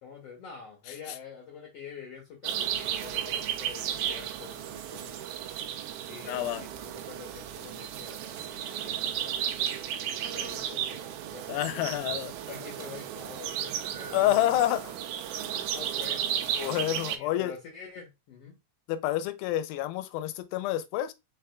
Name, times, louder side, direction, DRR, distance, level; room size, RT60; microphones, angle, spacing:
voice 1, 0.0-5.3 6.1-12.0 12.5-14.5 15.3-16.2 16.5-16.7 17.0-18.6, left 6 dB, 70° left, 1.5 m, -47 dB
sound 1, 2.4-17.2, right 10 dB, 85° right, 1.7 m, -34 dB
voice 2, 6.3-6.6 11.5-12.3 14.1-15.0 16.6-17.5 18.9-21.1, left 13 dB, 90° left, 2.4 m, -28 dB
4.8 x 4.7 x 2.3 m
omnidirectional pair, 4.1 m